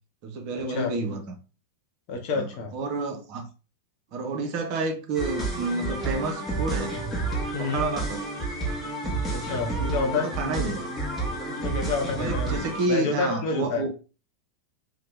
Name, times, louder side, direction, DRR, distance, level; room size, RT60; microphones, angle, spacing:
voice 1, 0.2-1.3 2.3-2.4 2.7-3.5 4.1-7.0 7.6-8.3 10.0-10.9 12.1-13.9, right 3 dB, 45° right, 0.5 m, -30 dB
voice 2, 2.1-2.7 7.5-7.9 9.3-10.3 11.5-13.8, left 4 dB, 45° left, 0.7 m, -29 dB
sound 1, 5.1-12.9, right 2 dB, 5° left, 0.9 m, -30 dB
2.8 x 2.0 x 3.2 m
figure-of-eight pair, 90°, 0 cm